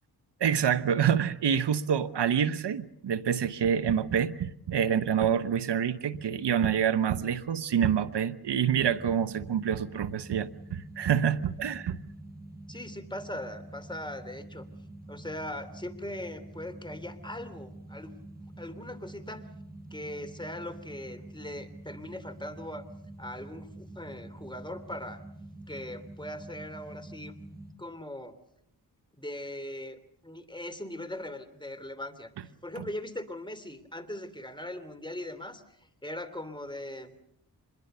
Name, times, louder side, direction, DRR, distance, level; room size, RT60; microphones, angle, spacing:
voice 1, 0.4-12.0 32.8-32.9, right 8 dB, 80° right, 14 dB, 1.0 m, -27 dB
sound 1, 8.8-27.7, right 1 dB, 20° right, 6.1 m, -46 dB
voice 2, 12.7-14.7 15.1-18.1 18.6-19.5 19.9-22.8 23.2-25.2 25.7-27.3 27.8-28.3 29.2-37.1, left 1 dB, 10° left, 9 dB, 3.2 m, -40 dB
25.5 x 21.5 x 6.8 m, 0.74 s
cardioid pair, 50°, 41 cm